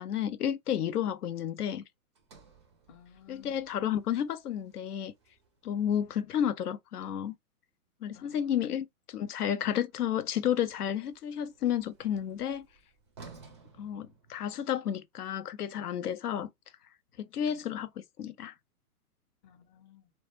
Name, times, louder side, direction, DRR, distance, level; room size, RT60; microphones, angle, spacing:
voice 1, 0.0-1.8 3.3-5.1 5.6-7.3 8.0-12.6 13.8-16.5 17.2-17.9 18.2-18.5, left 9 dB, 90° left, 0.6 m, -31 dB
Sliding door, 2.1-6.4 9.9-14.8, right 4 dB, 20° right, 0.3 m, -57 dB
voice 2, 2.9-3.7 8.1-8.7 17.4-17.8 19.4-20.1, left 10 dB, 25° left, 0.6 m, -57 dB
2.1 x 2.1 x 3.1 m
hypercardioid pair, 125°, 44 cm